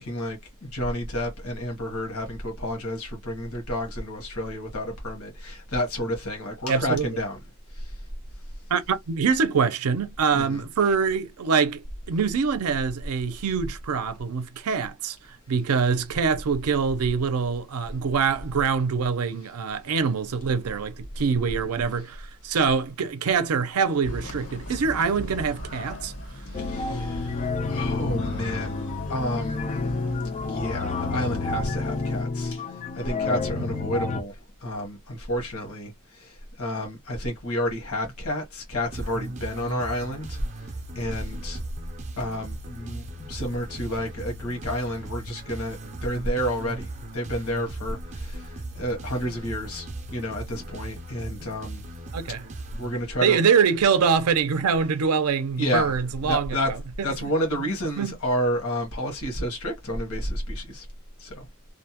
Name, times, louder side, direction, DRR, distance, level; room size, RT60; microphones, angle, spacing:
voice 1, 0.0-7.4 7.7-8.0 10.3-10.6 26.5-28.8 29.1-29.8 30.4-32.6 32.9-40.4 40.9-41.6 42.2-51.8 52.8-53.4 55.6-56.0 56.2-56.7 57.0-60.9 61.2-61.5, equal, 75° left, 1.1 m, -30 dB
voice 2, 6.7-7.1 8.7-15.2 15.5-26.1 52.1-52.4 53.2-56.5 57.0-57.1 58.0-58.1, right 6 dB, 90° right, 0.5 m, -24 dB
sound 1, 24.0-32.2, equal, 90° left, 1.5 m, -38 dB
sound 2, 26.5-34.2, left 3 dB, 30° left, 0.3 m, -29 dB
sound 3, 38.9-53.5, right 1 dB, 35° right, 0.4 m, -38 dB
2.6 x 2.1 x 2.8 m
head